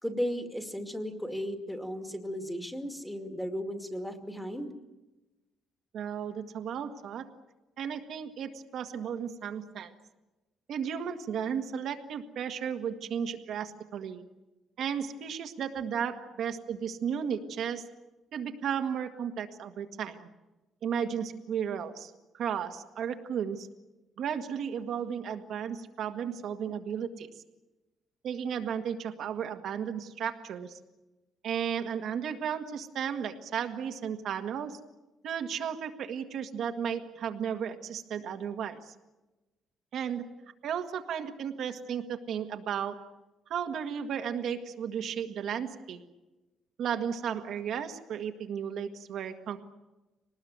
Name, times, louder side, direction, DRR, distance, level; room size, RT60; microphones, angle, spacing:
voice 1, 0.0-4.7, equal, 5° left, 5 dB, 2.2 m, -35 dB
voice 2, 5.9-7.3 7.8-9.9 10.7-14.2 14.8-17.9 18.3-20.3 20.8-23.7 24.2-27.3 28.2-30.8 31.4-34.8 35.2-38.9 39.9-40.3 40.6-43.1 43.5-46.0 46.8-49.7, right 8 dB, 65° right, 5 dB, 1.7 m, -34 dB
24.0 x 19.5 x 9.4 m, 1.1 s
cardioid pair, 150°, 0 cm